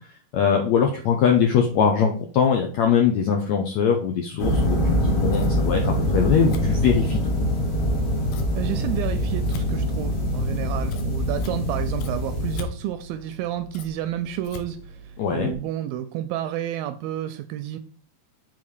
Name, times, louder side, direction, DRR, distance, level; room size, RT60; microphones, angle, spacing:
voice 1, 0.3-7.3 15.2-15.5, left 7 dB, 90° left, 2 dB, 1.6 m, -21 dB
sound 1, 4.4-12.6, equal, 55° left, 3.9 m, -24 dB
Scissors, 4.8-15.5, left 1 dB, 75° left, 2.5 m, -42 dB
voice 2, 8.5-17.8, right 12 dB, 80° right, 9 dB, 2.1 m, -30 dB
7.3 x 4.1 x 4.8 m, 0.43 s
omnidirectional pair, 4.4 m